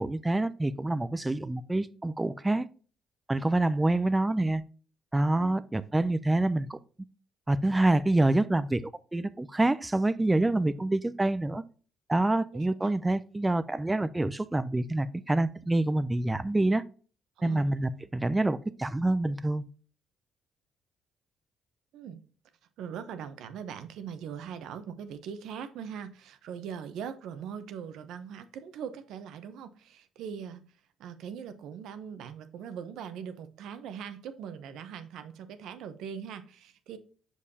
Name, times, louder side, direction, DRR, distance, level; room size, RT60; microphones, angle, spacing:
voice 1, 0.0-2.7 3.3-4.6 5.1-6.8 7.5-11.6 12.1-16.8 17.4-19.7, right 2 dB, 15° right, 0.4 m, -27 dB
voice 2, 5.3-5.9 12.5-12.9 17.4-17.6 21.9-22.2 22.8-30.6 31.0-37.0, right 7 dB, 80° right, 0.8 m, -41 dB
6.4 x 5.3 x 2.7 m
supercardioid pair, 75°, 0 cm